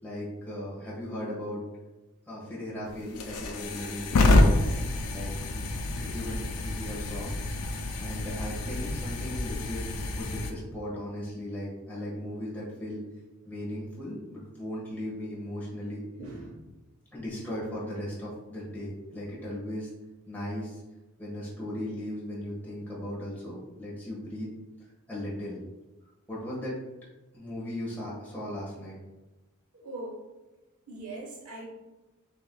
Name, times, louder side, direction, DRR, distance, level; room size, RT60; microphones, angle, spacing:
voice 1, 0.0-1.6 2.3-4.6 5.1-7.3 8.0-13.0 13.4-16.0 17.1-19.9 20.3-20.8 21.2-24.5 25.1-25.6 26.3-26.8 27.3-29.0, left 1 dB, 10° left, -7 dB, 1.3 m, -37 dB
sound 1, 2.9-10.5, left 2 dB, 85° left, 0.5 m, -27 dB
voice 2, 16.2-16.6 29.7-30.2 30.9-31.7, right 2 dB, 75° right, -1 dB, 1.1 m, -40 dB
6.7 x 2.8 x 2.2 m, 1.1 s
head